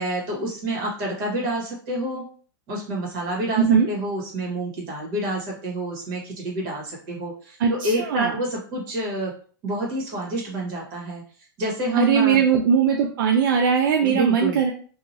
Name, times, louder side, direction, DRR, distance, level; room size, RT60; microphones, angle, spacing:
voice 1, 0.0-2.2 2.7-9.3 9.6-11.2 11.6-12.4 14.0-14.6, right 1 dB, 40° right, -2 dB, 1.4 m, -28 dB
voice 2, 3.6-3.9 7.6-8.3 12.0-14.7, right 7 dB, 75° right, 3 dB, 0.4 m, -20 dB
2.8 x 2.4 x 2.7 m, 0.43 s
hypercardioid pair, 135°, 11 cm